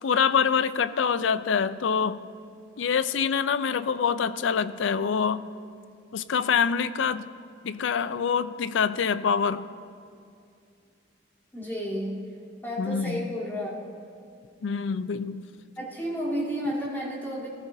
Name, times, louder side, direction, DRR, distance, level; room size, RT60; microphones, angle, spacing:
voice 1, 0.0-2.2 2.8-5.4 6.1-7.2 7.6-9.7 12.8-13.2 14.6-15.4, left 6 dB, 85° left, 14 dB, 0.4 m, -25 dB
voice 2, 11.5-12.1 12.6-13.8 15.8-17.5, equal, 10° left, -9 dB, 3.2 m, -31 dB
19.0 x 14.5 x 2.7 m, 2.4 s
head